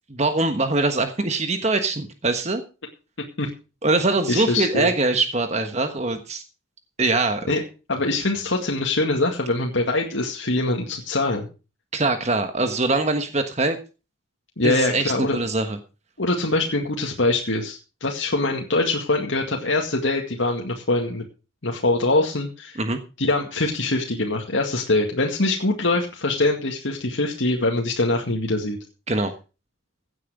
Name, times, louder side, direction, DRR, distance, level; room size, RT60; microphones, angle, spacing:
voice 1, 0.1-2.6 3.8-6.4 7.0-7.5 11.9-13.8 14.6-15.8 22.8-23.0 29.1-29.3, right 2 dB, 35° right, 8 dB, 1.4 m, -23 dB
voice 2, 4.3-4.9 7.5-7.6 7.9-11.5 14.6-15.4 16.2-21.2 21.6-22.8 23.2-28.8, left 2 dB, 75° left, 1 dB, 2.1 m, -23 dB
16.5 x 9.3 x 5.0 m, 0.33 s
head